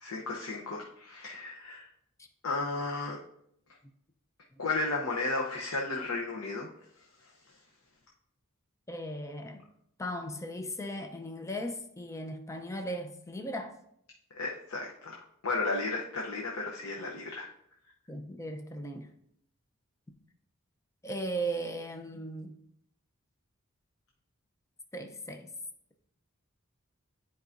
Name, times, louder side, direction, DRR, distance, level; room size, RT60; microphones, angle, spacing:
voice 1, 0.0-1.9 2.4-3.2 4.6-6.7 7.2-7.3 14.3-17.5, left 3 dB, 90° left, -1 dB, 0.8 m, -34 dB
voice 2, 8.9-9.7 10.0-13.8 18.1-19.1 21.0-22.6 24.9-25.5, right 1 dB, 15° left, 5 dB, 0.6 m, -37 dB
10.0 x 4.7 x 2.6 m, 0.72 s
head